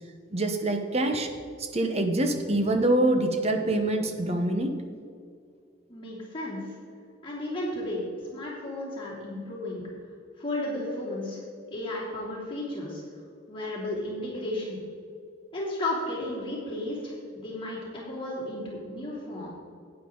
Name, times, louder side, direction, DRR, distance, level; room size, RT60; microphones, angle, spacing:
voice 1, 0.3-1.3 1.6-4.7, right 1 dB, 35° right, 5 dB, 1.0 m, -25 dB
voice 2, 5.9-6.6 7.2-8.0 8.3-9.8 10.4-11.4 11.7-13.0 13.5-14.8 15.5-19.5, left 1 dB, 30° left, -6 dB, 3.0 m, -33 dB
12.0 x 9.2 x 3.9 m, 2.3 s
head